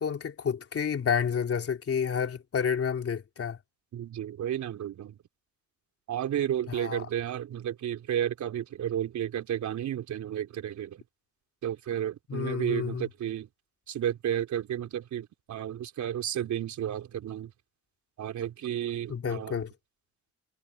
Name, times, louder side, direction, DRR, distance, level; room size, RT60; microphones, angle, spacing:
voice 1, 0.0-3.6 6.7-7.0 12.3-13.1 19.1-19.7, left 7 dB, 50° left, 3.3 m, -30 dB
voice 2, 3.9-5.2 6.1-11.0 11.6-13.5 13.9-17.5 18.2-19.6, right 10 dB, 70° right, 4.1 m, -32 dB
cardioid pair, 90°, 30 cm